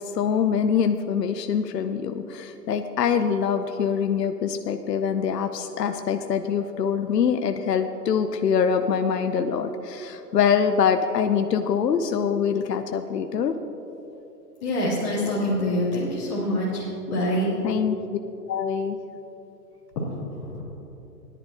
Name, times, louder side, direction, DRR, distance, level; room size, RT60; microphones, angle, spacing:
voice 1, 0.0-13.5 17.6-18.2 18.5-19.0, left 7 dB, 70° left, 7 dB, 0.7 m, -24 dB
voice 2, 14.6-17.5 19.9-20.0 20.4-20.6, left 1 dB, 20° left, -10 dB, 2.8 m, -25 dB
17.5 x 11.0 x 2.8 m, 3.0 s
hypercardioid pair, 170°, 50 cm